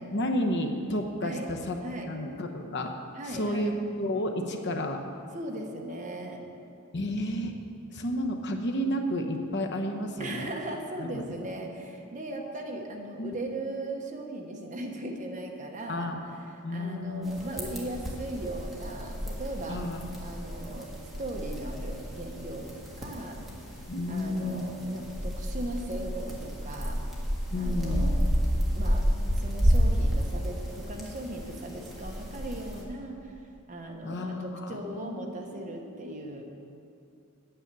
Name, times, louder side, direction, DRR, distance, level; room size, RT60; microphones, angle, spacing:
voice 1, 0.0-1.8 2.0-2.9 3.2-5.0 6.9-7.5 7.9-10.5 11.0-11.2 13.2-13.4 15.9-16.2 16.6-17.3 19.7-20.0 23.9-24.7 27.5-28.1 34.0-35.3 35.5-35.6 36.0-36.1, left 1 dB, 50° left, 3 dB, 0.9 m, -31 dB
voice 2, 1.8-2.2 3.1-3.7 5.3-6.4 10.2-16.1 16.5-19.8 20.2-20.9 21.2-23.4 24.1-27.0 27.5-28.3 28.7-33.3 33.7-36.4, right 1 dB, 35° right, 2 dB, 1.1 m, -38 dB
sound 1, 17.2-32.8, equal, ahead, 1.7 m, -31 dB
9.1 x 8.8 x 6.8 m, 2.5 s
head